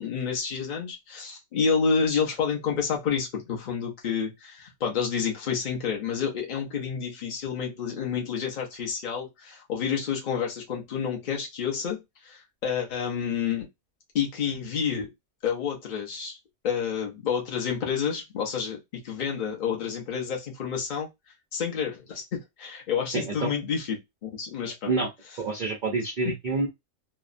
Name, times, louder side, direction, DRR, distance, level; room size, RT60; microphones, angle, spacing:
voice 1, 0.0-13.7 14.1-15.1 15.4-16.4 16.6-21.1 21.5-24.9, left 6 dB, 55° left, 0.5 m, -29 dB
voice 2, 23.1-23.5 24.9-25.1 25.4-26.7, right 3 dB, 90° right, 0.4 m, -27 dB
2.8 x 2.1 x 2.4 m
omnidirectional pair, 1.6 m